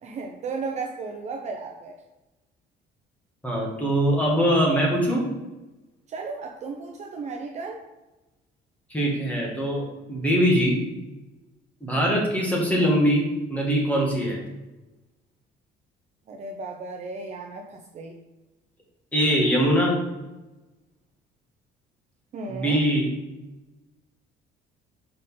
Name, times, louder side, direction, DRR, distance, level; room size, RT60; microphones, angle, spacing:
voice 1, 0.0-2.0 6.1-7.8 16.3-18.1 22.3-22.8, right 4 dB, 35° right, 2 dB, 0.6 m, -34 dB
voice 2, 3.4-5.2 8.9-10.8 11.8-14.4 19.1-20.0 22.5-23.1, equal, 5° left, -3 dB, 1.6 m, -22 dB
5.3 x 4.4 x 5.4 m, 1.1 s
cardioid pair, 165°, 19 cm